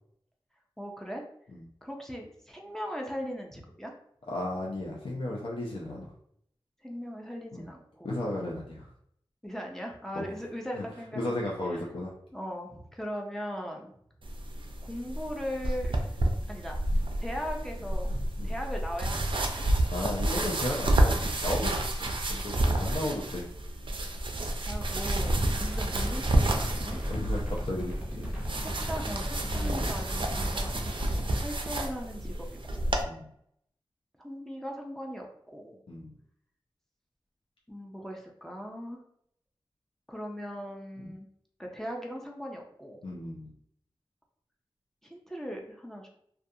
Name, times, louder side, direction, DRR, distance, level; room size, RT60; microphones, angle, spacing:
voice 1, 0.8-1.2 1.8-3.9 6.8-8.2 9.4-11.5 12.3-13.9 14.8-16.2 16.5-16.8 17.2-18.1 18.4-19.6 24.6-27.0 28.6-32.9 34.2-35.3 35.5-35.8 37.7-39.0 40.1-41.3 41.6-43.0 45.0-46.1, equal, 5° left, 0 dB, 0.5 m, -39 dB
voice 2, 4.3-6.1 7.5-7.7 8.0-8.9 10.1-10.3 10.8-10.9 11.2-12.1 18.4-18.5 19.9-23.4 25.6-25.7 27.1-28.5 29.6-29.9 33.0-33.3 35.9-36.1 41.0-41.1 43.0-43.5, left 1 dB, 65° left, -3 dB, 0.5 m, -35 dB
sound 1, 14.2-33.0, right 1 dB, 60° right, 0.4 m, -30 dB
sound 2, 25.0-31.4, equal, 15° right, 0.8 m, -35 dB
2.4 x 2.3 x 2.7 m, 0.69 s
wide cardioid pair, 60°, 10 cm